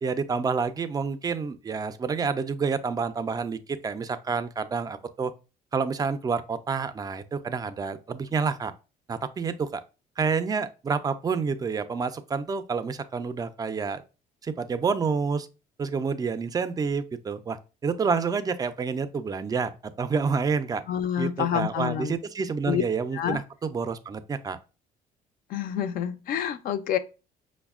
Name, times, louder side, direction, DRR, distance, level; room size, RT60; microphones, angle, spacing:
voice 1, 0.0-5.3 5.7-8.7 9.1-9.8 10.2-14.0 14.4-15.5 15.8-20.8 21.2-24.6, right 5 dB, 20° right, 0.3 m, -28 dB
voice 2, 20.9-22.2 22.7-22.8 23.1-23.4 25.5-27.0, left 9 dB, 60° left, 0.4 m, -28 dB
5.3 x 2.1 x 2.3 m
cardioid pair, 110°, 17 cm